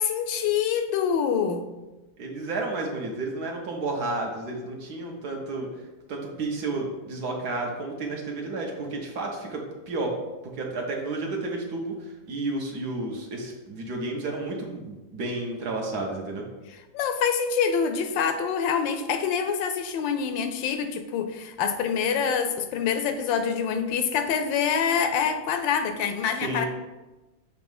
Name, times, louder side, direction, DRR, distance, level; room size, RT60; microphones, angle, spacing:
voice 1, 0.0-1.6 16.9-26.7, left 7 dB, 75° left, 8 dB, 1.2 m, -26 dB
voice 2, 2.2-5.7 6.1-10.1 10.5-16.4 26.4-26.7, right 2 dB, 60° right, 0 dB, 1.4 m, -31 dB
7.0 x 3.1 x 5.4 m, 1.1 s
omnidirectional pair, 2.1 m